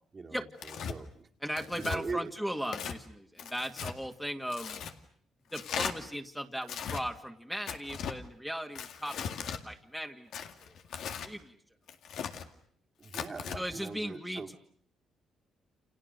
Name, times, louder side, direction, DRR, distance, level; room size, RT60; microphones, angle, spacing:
voice 1, 0.1-1.3 1.8-2.3 13.0-14.5, right 4 dB, 35° right, 2 dB, 2.3 m, -41 dB
Tearing, 0.6-1.0 1.6-2.0 2.6-3.0 3.4-3.9 4.5-4.9 5.5-5.9 6.6-7.0 7.7-8.2 8.7-9.6 10.3-11.3 11.9-12.5 13.0-13.6, left 7 dB, 75° left, 2.1 m, -38 dB
voice 2, 1.4-4.8 5.5-9.2 9.6-10.3 11.2-11.5 13.6-14.6, equal, ahead, 4 dB, 2.0 m, -37 dB
29.5 x 28.5 x 6.6 m, 0.63 s
cardioid pair, 90°, 0 cm